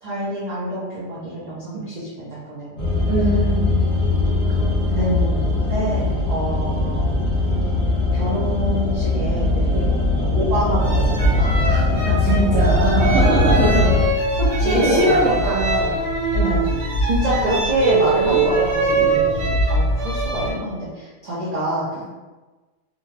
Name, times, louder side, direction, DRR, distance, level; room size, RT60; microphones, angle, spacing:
voice 1, 0.0-2.9 4.9-5.4 5.7-6.0 6.3-7.2 8.1-12.2 14.3-15.6 16.4-16.7 17.0-22.0, equal, 45° right, -9 dB, 0.6 m, -26 dB
sound 1, 2.8-14.0, left 2 dB, 15° left, 1.2 m, -20 dB
voice 2, 3.1-3.8 9.7-9.9 12.2-13.9 14.6-16.0 16.3-16.6 18.3-18.4 19.0-19.2 22.0-22.1, right 2 dB, 85° right, -7 dB, 1.0 m, -22 dB
sound 2, 10.8-20.5, right 2 dB, 60° right, 1.1 m, -22 dB
2.6 x 2.2 x 3.1 m, 1.2 s
omnidirectional pair, 1.4 m